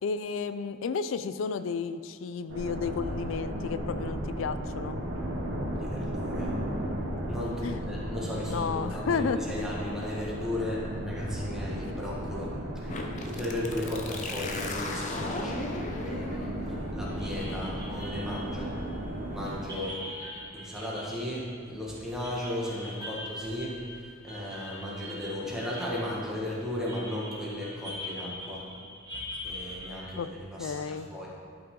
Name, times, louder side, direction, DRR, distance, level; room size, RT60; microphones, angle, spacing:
voice 1, 0.0-5.0 7.6-7.8 8.5-9.4 30.2-30.3 30.6-31.1, left 5 dB, 75° left, 12 dB, 0.4 m, -32 dB
sound 1, 2.5-19.6, equal, 80° right, 1.3 m, -35 dB
voice 2, 5.7-6.6 7.3-18.7 19.3-20.0 20.5-28.7 29.4-31.3, left 1 dB, 5° right, -6 dB, 1.5 m, -36 dB
sound 2, 12.9-20.4, left 2 dB, 35° left, 0.7 m, -40 dB
sound 3, 17.0-30.1, left 1 dB, 20° right, 2.1 m, -43 dB
11.5 x 5.8 x 3.8 m, 2.3 s
head